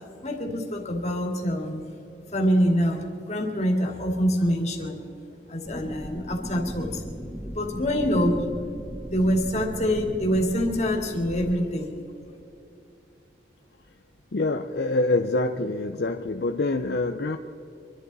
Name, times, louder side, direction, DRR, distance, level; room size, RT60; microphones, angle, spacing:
voice 1, 0.2-1.8 2.3-5.0 5.5-7.0 7.5-8.4 9.1-11.9, equal, 40° left, 0 dB, 2.3 m, -25 dB
sound 1, 5.7-11.5, equal, 5° left, 1.2 m, -37 dB
voice 2, 14.3-17.4, left 2 dB, 60° left, 5 dB, 0.6 m, -25 dB
25.5 x 12.0 x 4.1 m, 2.8 s
head